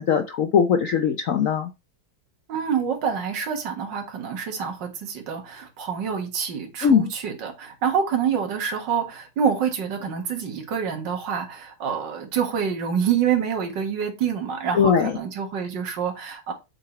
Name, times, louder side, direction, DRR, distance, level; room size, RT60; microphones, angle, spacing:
voice 1, 0.0-1.7 6.8-7.1 14.7-15.1, left 7 dB, 70° left, 0.8 m, -20 dB
voice 2, 2.5-16.5, right 7 dB, 65° right, 2.3 m, -27 dB
7.9 x 4.1 x 4.3 m
omnidirectional pair, 2.2 m